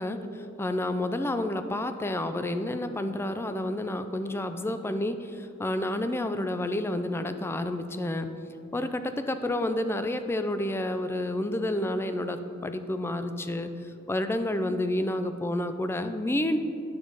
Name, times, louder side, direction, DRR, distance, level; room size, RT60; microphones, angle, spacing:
voice 1, 0.0-8.3 8.7-16.6, left 1 dB, 10° left, 9 dB, 0.3 m, -30 dB
9.5 x 6.3 x 4.0 m, 2.7 s
head